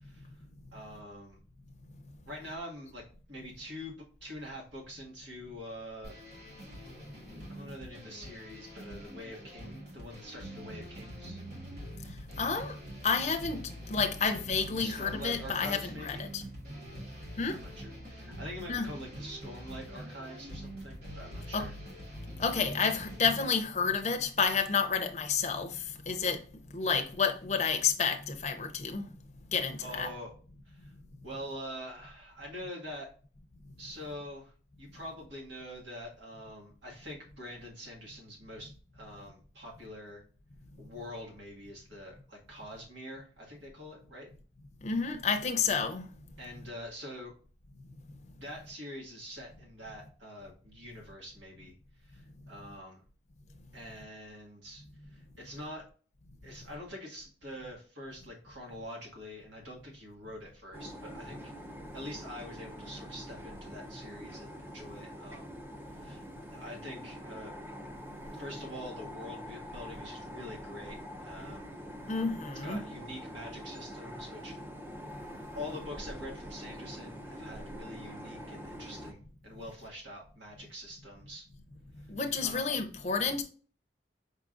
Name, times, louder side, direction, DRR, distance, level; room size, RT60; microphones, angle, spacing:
voice 1, 0.7-1.4 2.3-3.0 3.3-6.2 7.5-11.4 14.8-16.2 17.5-21.7 29.8-30.3 30.7-30.9 31.2-33.1 33.8-34.5 34.8-40.2 40.8-44.3 46.4-47.3 48.3-51.7 52.0-53.0 53.7-54.8 55.1-55.8 56.4-61.5 61.9-65.5 66.0-67.5 68.3-71.7 72.6-74.6 75.5-81.5 82.4-82.6, equal, 80° right, 1.9 m, -45 dB
sound 1, 6.0-23.5, equal, 60° right, 1.5 m, -45 dB
voice 2, 12.4-12.7 13.0-16.4 17.4-17.6 18.7-18.9 21.5-21.7 22.4-25.7 26.1-26.4 26.7-29.1 29.5-30.1 44.8-46.1 72.1-72.9 82.1-83.4, left 5 dB, 35° left, 0.6 m, -30 dB
sound 2, 60.7-79.1, equal, 10° right, 0.4 m, -45 dB
5.2 x 3.6 x 2.5 m
head